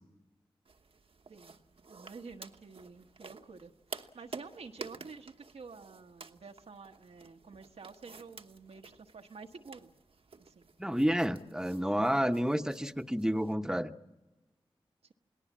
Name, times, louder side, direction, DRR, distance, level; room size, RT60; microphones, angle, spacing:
sound 1, 0.6-13.5, right 4 dB, 70° right, 1.1 m, -51 dB
voice 1, 1.9-9.9 10.4-10.7, right 4 dB, 85° right, 4 dB, 1.3 m, -50 dB
voice 2, 10.8-13.9, equal, 5° right, 8 dB, 1.0 m, -30 dB
28.5 x 18.5 x 7.4 m, 1.1 s
cardioid pair, 45°, 10 cm